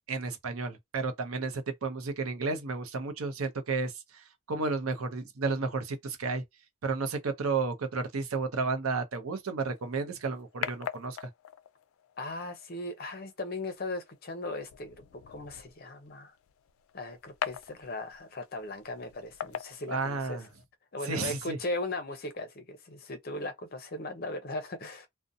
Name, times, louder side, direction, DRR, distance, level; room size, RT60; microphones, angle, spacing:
voice 1, 0.1-6.4 6.8-11.3 19.9-20.5 21.1-21.6, right 4 dB, 85° right, 0.6 m, -32 dB
sound 1, 9.7-20.6, left 9 dB, 80° left, 0.3 m, -43 dB
voice 2, 12.2-16.3 16.9-20.4 20.9-25.1, left 2 dB, 45° left, 0.6 m, -38 dB
2.6 x 2.1 x 2.6 m
head